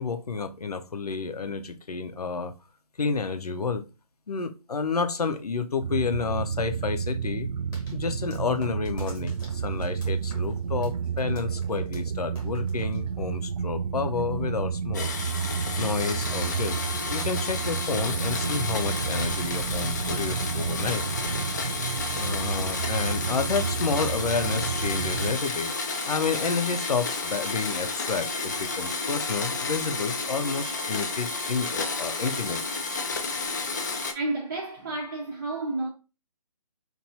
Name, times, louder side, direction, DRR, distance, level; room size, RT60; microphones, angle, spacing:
voice 1, 0.0-2.5 3.0-3.8 4.3-7.5 7.9-15.1 15.8-16.8 17.1-21.0 22.2-25.7 26.0-32.6, left 5 dB, 75° left, 0.6 m, -30 dB
sound 1, 5.8-25.4, right 6 dB, 75° right, 0.4 m, -31 dB
sound 2, 7.7-13.5, left 2 dB, 10° left, 1.1 m, -49 dB
Domestic sounds home sounds, 14.9-34.1, left 4 dB, 30° left, 0.4 m, -31 dB
voice 2, 34.1-35.9, right 2 dB, 30° right, 0.6 m, -31 dB
4.6 x 2.6 x 2.7 m
figure-of-eight pair, 150°, 20 cm